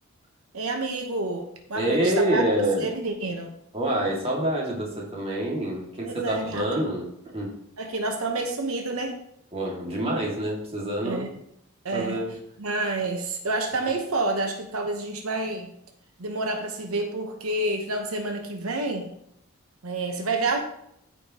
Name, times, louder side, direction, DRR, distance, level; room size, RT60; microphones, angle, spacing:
voice 1, 0.5-2.4 2.8-3.5 6.0-6.7 7.8-9.2 11.0-11.3 11.8-12.2 12.6-15.7 16.2-19.1 19.8-20.6, right 2 dB, 85° right, 4 dB, 1.0 m, -29 dB
voice 2, 1.7-2.9 3.7-7.1 7.3-7.5 9.5-11.3 11.9-12.3, right 1 dB, 30° right, -2 dB, 2.1 m, -26 dB
13.5 x 5.1 x 2.9 m, 0.74 s
head